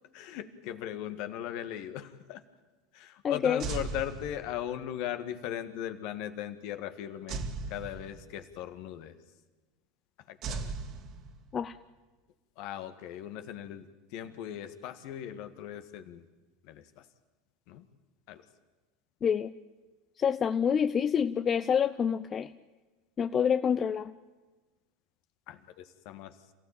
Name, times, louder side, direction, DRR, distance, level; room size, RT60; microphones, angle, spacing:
voice 1, 0.1-2.4 2.9-7.4 7.7-9.2 10.3-10.7 12.6-16.3 16.6-17.1 17.7-17.9 18.3-18.4 25.5-26.4, left 11 dB, 60° left, 9 dB, 1.8 m, -38 dB
voice 2, 3.2-3.6 11.5-11.7 19.2-19.5 20.2-22.5 23.2-24.1, left 7 dB, 35° left, 12 dB, 0.7 m, -27 dB
sound 1, 3.6-4.9 7.3-8.6 10.4-11.7, right 4 dB, 50° right, 2.3 m, -38 dB
27.5 x 15.5 x 8.8 m, 1.3 s
hypercardioid pair, 85°, 0 cm